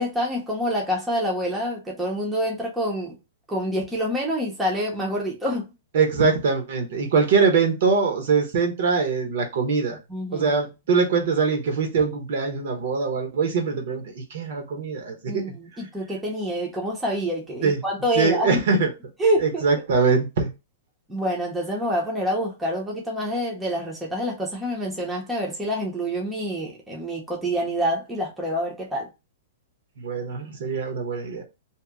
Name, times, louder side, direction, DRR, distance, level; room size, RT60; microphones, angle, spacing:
voice 1, 0.0-3.1 3.5-5.7 10.1-10.5 15.3-18.6 19.2-19.6 21.1-29.1, equal, 5° right, 0.7 m, -27 dB
voice 2, 5.9-10.0 10.3-15.6 17.6-17.8 18.1-18.9 19.4-20.5 30.0-31.4, right 5 dB, 60° right, 1.0 m, -23 dB
2.8 x 2.1 x 3.5 m
hypercardioid pair, 165°, 0 cm